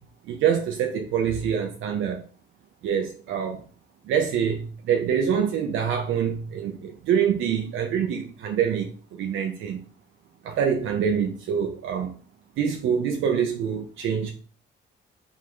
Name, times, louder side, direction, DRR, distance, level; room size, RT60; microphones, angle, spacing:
voice 1, 0.3-2.2 2.8-3.6 4.1-9.8 10.4-12.1 12.6-14.3, right 8 dB, 80° right, 0.7 m, -25 dB
3.7 x 3.6 x 3.2 m
cardioid pair, 90°, 20 cm